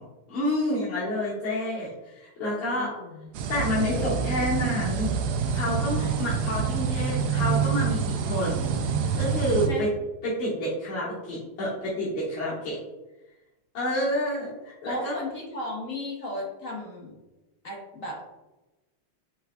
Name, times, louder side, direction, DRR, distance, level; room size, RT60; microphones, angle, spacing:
voice 1, 0.0-2.9 3.5-5.1 5.5-8.7 9.1-9.9 10.2-12.8 13.7-15.2, left 1 dB, 75° left, -9 dB, 2.1 m, -29 dB
voice 2, 2.7-3.3 3.9-4.3 6.0-6.2 9.7-9.9 14.8-17.2 17.6-18.3, left 2 dB, 50° left, -2 dB, 1.0 m, -36 dB
sound 1, 3.3-9.7, right 6 dB, 80° right, 0.9 m, -27 dB
5.8 x 3.9 x 2.3 m, 1.0 s
omnidirectional pair, 2.3 m